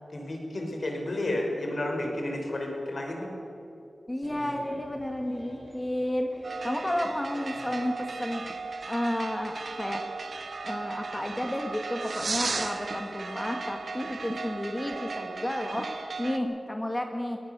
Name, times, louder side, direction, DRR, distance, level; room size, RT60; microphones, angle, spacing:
voice 1, 0.1-3.3, left 1 dB, 60° left, 1 dB, 5.3 m, -31 dB
voice 2, 4.1-10.1 10.6-17.4, left 1 dB, 20° left, 4 dB, 1.9 m, -32 dB
sound 1, 4.2-8.0, right 1 dB, 45° right, 5.5 m, -47 dB
sound 2, 6.4-16.4, right 4 dB, 70° right, 1.3 m, -36 dB
22.5 x 18.0 x 7.0 m, 2.8 s
wide cardioid pair, 60°, 0 cm